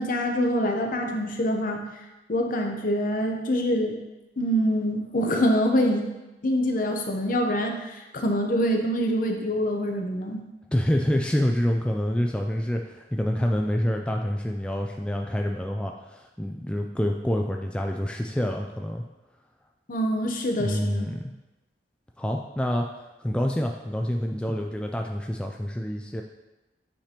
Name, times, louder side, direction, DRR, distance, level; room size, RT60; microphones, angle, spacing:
voice 1, 0.0-1.8 2.3-3.9 4.4-6.1 6.4-10.4 19.9-21.1, equal, 50° left, 3 dB, 0.8 m, -25 dB
voice 2, 10.7-19.0 20.6-21.3 22.2-22.9 23.2-26.2, equal, 5° left, 2 dB, 0.3 m, -27 dB
8.6 x 5.0 x 2.9 m, 1.0 s
head